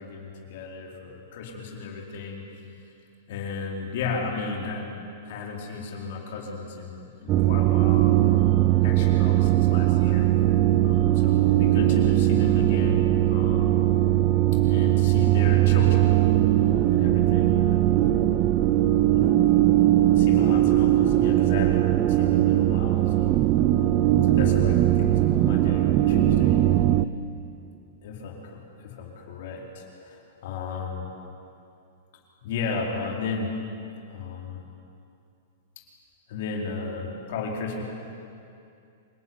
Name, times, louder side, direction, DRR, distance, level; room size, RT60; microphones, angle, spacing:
voice 1, 0.0-2.4 3.3-4.9 5.3-8.1 8.3-10.3 10.8-13.8 14.6-16.2 16.5-17.8 19.1-19.5 19.9-23.4 24.2-26.6 28.0-31.1 32.4-33.5 34.1-34.6 35.8-35.9 36.3-37.8, left 4 dB, 55° left, 0 dB, 4.6 m, -35 dB
sound 1, 7.3-27.1, right 14 dB, 30° right, 0.7 m, -20 dB
27.0 x 19.0 x 9.9 m, 2.5 s
supercardioid pair, 160°, 0 cm